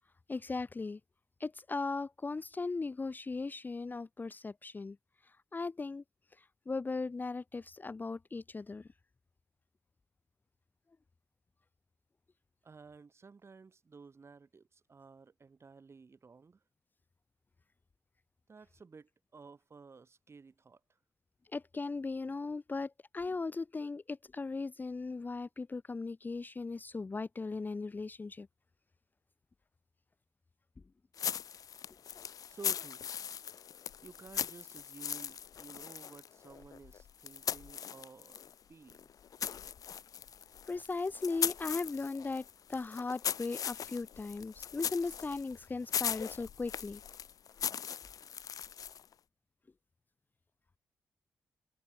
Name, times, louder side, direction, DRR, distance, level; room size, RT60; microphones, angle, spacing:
voice 1, 0.3-1.0 1.4-5.0 5.5-6.0 6.4-8.9 21.5-28.5 40.7-47.0, left 3 dB, 30° left, 0.6 m, -38 dB
voice 2, 12.6-16.6 18.5-21.0 32.5-33.0 34.0-39.1, right 4 dB, 45° right, 4.0 m, -54 dB
sound 1, 31.2-38.5 38.9-49.1, left 8 dB, 65° left, 1.0 m, -39 dB
cardioid pair, 65°, 6 cm